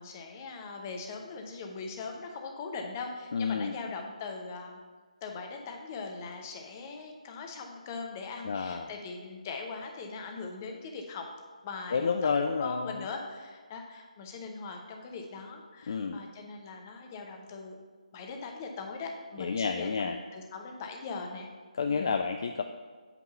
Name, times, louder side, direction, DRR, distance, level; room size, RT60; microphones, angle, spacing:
voice 1, 0.0-4.8 5.2-11.3 11.6-12.3 12.6-17.8 18.1-21.5 21.9-22.2, left 4 dB, 20° left, 3 dB, 0.7 m, -40 dB
voice 2, 3.3-3.7 8.4-8.9 11.9-13.0 15.9-16.2 19.4-20.2 21.7-22.6, left 5 dB, 40° left, 6 dB, 0.3 m, -30 dB
8.2 x 3.6 x 5.5 m, 1.5 s
figure-of-eight pair, 150°, 4 cm